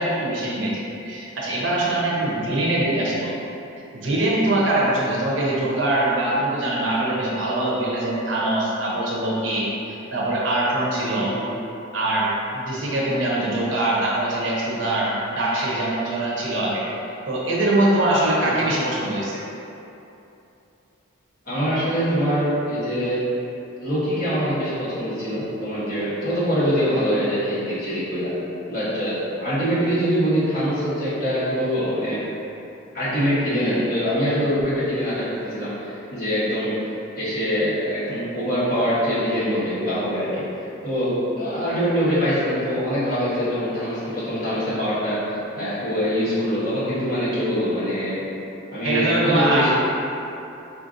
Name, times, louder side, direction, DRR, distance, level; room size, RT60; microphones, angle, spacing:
voice 1, 0.0-3.3 3.7-11.3 11.9-16.8 17.3-19.4 48.8-49.7, right 1 dB, 60° right, -5 dB, 0.6 m, -23 dB
voice 2, 11.2-11.5 18.4-18.5 21.4-23.2 23.8-28.3 28.7-32.2 32.9-36.7 37.1-40.4 40.8-48.2 48.7-49.7, equal, 40° left, -13 dB, 1.3 m, -24 dB
4.4 x 2.5 x 2.5 m, 2.8 s
head